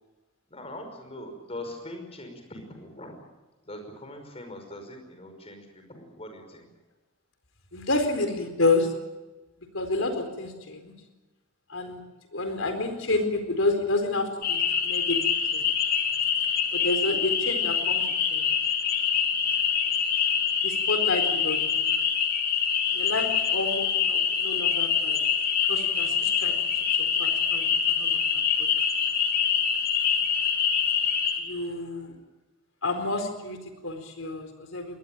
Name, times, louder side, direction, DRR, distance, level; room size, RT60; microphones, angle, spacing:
voice 1, 0.5-3.2 3.6-6.7, left 1 dB, 30° left, 5 dB, 5.4 m, -41 dB
voice 2, 7.7-8.9 9.7-10.9 11.7-12.0 12.3-15.2 15.5-15.6 16.7-18.5 20.6-21.9 22.9-25.2 25.7-26.5 27.0-27.7 28.0-28.7 31.4-32.2 32.8-35.0, left 2 dB, 80° left, 7 dB, 4.3 m, -29 dB
sound 1, 14.4-31.4, left 7 dB, 50° left, 3.3 m, -25 dB
23.0 x 19.5 x 9.1 m, 1.1 s
head